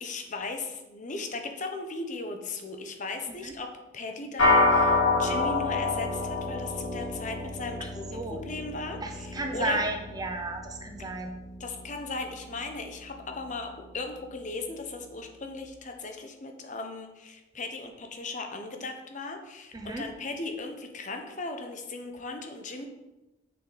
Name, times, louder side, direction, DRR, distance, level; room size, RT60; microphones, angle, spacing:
voice 1, 0.0-3.7 3.9-9.9 11.6-22.9, left 3 dB, 35° left, 4 dB, 0.8 m, -37 dB
sound 1, 4.4-13.9, left 2 dB, 70° left, 2.4 m, -29 dB
voice 2, 9.0-11.3 19.7-20.0, right 2 dB, 20° right, 4 dB, 0.6 m, -33 dB
6.9 x 6.5 x 4.0 m, 1.0 s
head